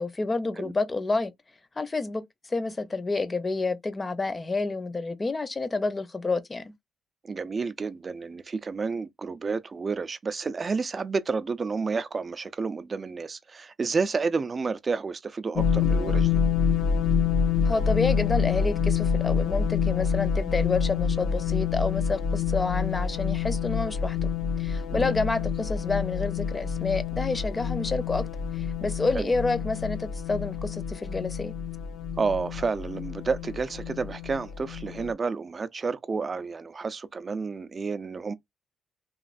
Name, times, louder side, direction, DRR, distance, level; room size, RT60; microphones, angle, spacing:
voice 1, 0.0-1.3 1.8-6.7 17.6-24.3 24.6-28.2 28.5-31.5, left 3 dB, 25° left, 0.6 m, -29 dB
voice 2, 7.2-16.4 24.9-25.1 29.1-29.3 32.2-38.3, right 4 dB, 35° right, 0.4 m, -30 dB
sound 1, 15.6-35.1, left 6 dB, 75° left, 0.5 m, -27 dB
3.0 x 2.4 x 2.4 m
cardioid pair, 90°, 0 cm